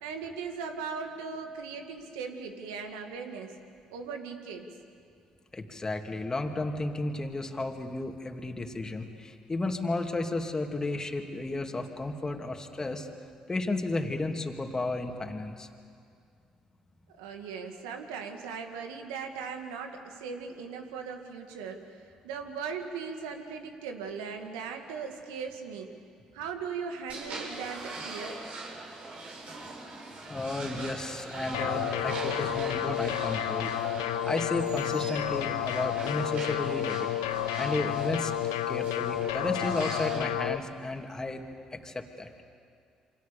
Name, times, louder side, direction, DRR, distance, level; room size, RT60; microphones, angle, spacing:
voice 1, 0.0-3.6 3.9-4.7 17.1-26.0 26.3-28.4, right 5 dB, 85° right, 5 dB, 2.1 m, -38 dB
voice 2, 5.5-13.1 13.5-15.7 30.3-33.7 34.3-37.1 37.6-38.3 38.7-42.3, left 2 dB, 25° left, 3 dB, 2.7 m, -33 dB
sound 1, 27.1-40.2, right 2 dB, 60° right, 5.8 m, -41 dB
sound 2, 31.5-40.6, left 12 dB, 90° left, 0.8 m, -31 dB
28.5 x 24.5 x 7.0 m, 2.3 s
hypercardioid pair, 55°, 2 cm